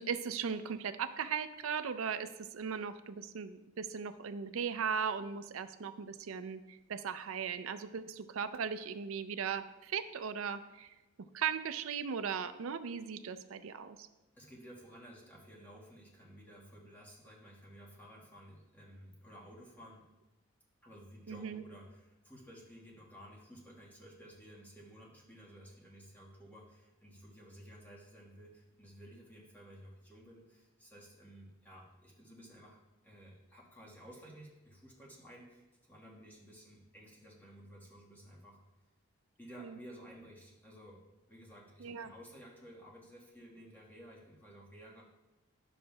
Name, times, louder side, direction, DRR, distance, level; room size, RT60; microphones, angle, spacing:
voice 1, 0.0-10.9 11.3-14.1 21.3-21.6 39.6-39.8 41.8-42.1, right 6 dB, 75° right, 11 dB, 0.4 m, -38 dB
voice 2, 14.3-20.0 20.8-32.8 33.0-38.6 39.4-41.0 41.3-45.0, equal, 10° left, -4 dB, 1.5 m, -54 dB
11.0 x 7.0 x 2.3 m, 1.1 s
head